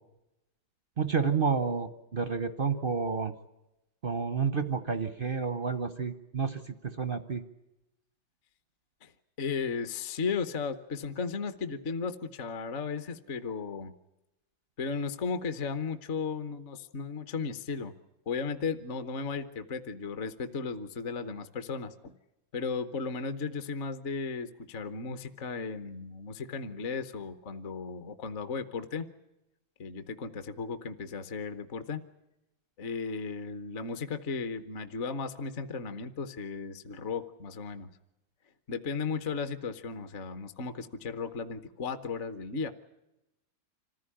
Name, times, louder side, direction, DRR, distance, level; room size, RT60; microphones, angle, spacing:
voice 1, 1.0-3.3 4.0-7.4, right 5 dB, 50° right, 11 dB, 0.6 m, -30 dB
voice 2, 9.4-13.9 14.8-17.9 18.3-22.1 22.5-29.1 29.8-32.0 32.8-37.9 38.7-42.7, left 5 dB, 45° left, 10 dB, 1.1 m, -35 dB
26.5 x 15.0 x 9.9 m, 0.93 s
omnidirectional pair, 2.2 m